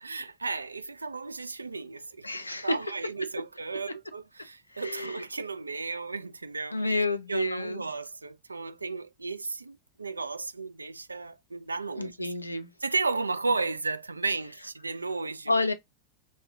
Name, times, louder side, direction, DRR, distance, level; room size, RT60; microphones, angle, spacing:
voice 1, 0.0-2.3 2.6-12.3 12.8-15.6, right 3 dB, 80° right, 0.3 m, -34 dB
voice 2, 2.2-2.8 4.7-5.2 6.7-7.8 12.0-12.7 15.5-15.7, left 2 dB, 85° left, 0.4 m, -29 dB
3.1 x 2.6 x 3.5 m
figure-of-eight pair, 90°, 0 cm